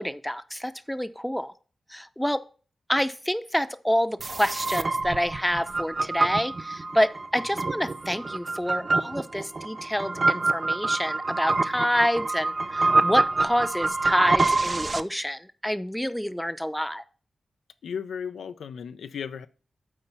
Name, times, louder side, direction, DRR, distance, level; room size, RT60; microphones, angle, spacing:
voice 1, 0.0-1.5 1.9-2.4 2.9-17.0, equal, 5° left, 0.6 m, -28 dB
sound 1, 4.2-15.0, right 3 dB, 45° right, 0.4 m, -26 dB
voice 2, 17.8-19.5, left 7 dB, 85° left, 0.4 m, -35 dB
8.0 x 4.4 x 5.6 m
cardioid pair, 45°, 0 cm